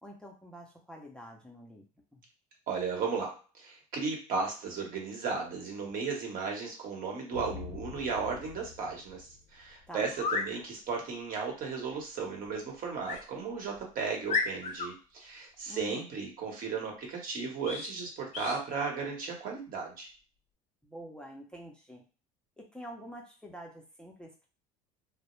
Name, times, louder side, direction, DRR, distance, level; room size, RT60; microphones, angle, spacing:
voice 1, 0.0-1.8 2.1-2.2 9.9-10.1 15.7-16.1 20.8-22.0 22.6-24.5, equal, 5° left, -1 dB, 0.5 m, -47 dB
voice 2, 2.7-20.1, right 5 dB, 50° right, 1 dB, 1.0 m, -35 dB
sound 1, 7.3-9.9, left 6 dB, 75° left, 0.4 m, -46 dB
sound 2, 10.1-10.5 13.0-13.2 13.8-13.9 14.3-14.9 17.6-17.9 18.3-18.6, left 4 dB, 40° left, 0.7 m, -32 dB
2.1 x 2.0 x 3.0 m, 0.35 s
hypercardioid pair, 85°, 18 cm